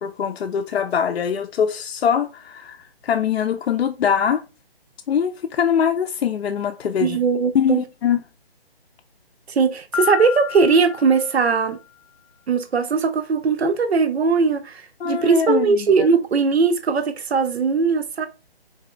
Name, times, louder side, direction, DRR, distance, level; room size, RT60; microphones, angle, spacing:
voice 1, 0.0-4.4 5.1-7.2 7.5-8.2 15.0-16.1, left 8 dB, 80° left, 0.5 m, -22 dB
voice 2, 7.0-7.8 9.5-11.8 12.5-18.3, right 5 dB, 90° right, 0.7 m, -19 dB
Piano, 9.9-11.8, left 10 dB, 30° right, 0.4 m, -31 dB
4.0 x 3.8 x 2.4 m
hypercardioid pair, 175°, 31 cm